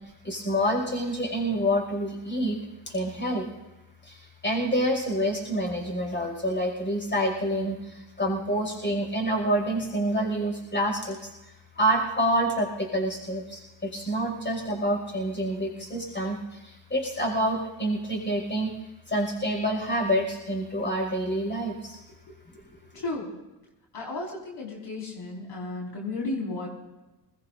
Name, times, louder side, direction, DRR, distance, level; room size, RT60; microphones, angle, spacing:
voice 1, 0.2-2.6 2.9-3.5 4.0-11.3 11.8-18.7 19.1-22.0, equal, 25° left, 1 dB, 5.7 m, -27 dB
voice 2, 22.6-23.3 23.9-26.7, left 2 dB, 55° left, -3 dB, 5.2 m, -34 dB
21.0 x 20.5 x 2.6 m, 1.0 s
supercardioid pair, 70°, 47 cm